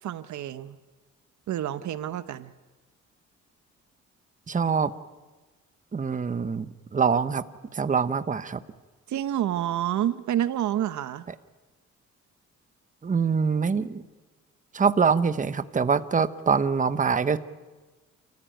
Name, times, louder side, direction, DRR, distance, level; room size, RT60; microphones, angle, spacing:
voice 1, 0.0-0.8 1.5-2.5 9.1-11.3, right 11 dB, 70° right, 13 dB, 1.0 m, -28 dB
voice 2, 4.5-4.9 5.9-7.4 7.7-8.6 13.0-14.0 14.7-17.4, right 5 dB, 25° right, 12 dB, 1.0 m, -24 dB
29.5 x 15.0 x 9.2 m, 1.2 s
cardioid pair, 90°, 30 cm